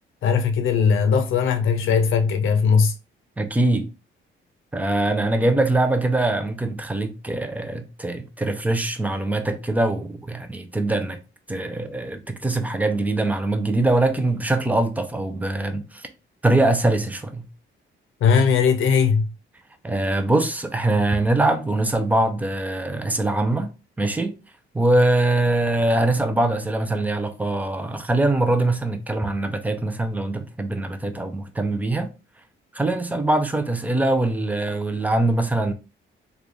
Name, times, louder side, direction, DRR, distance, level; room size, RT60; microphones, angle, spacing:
voice 1, 0.2-2.9 18.2-19.2, left 6 dB, 70° left, 0.6 m, -19 dB
voice 2, 3.4-3.9 4.7-11.2 11.5-16.1 16.4-17.5 19.8-23.7 24.0-24.3 24.7-32.1 32.7-35.7, right 2 dB, 5° right, 0.5 m, -22 dB
3.3 x 2.3 x 3.8 m
cardioid pair, 145°, 21 cm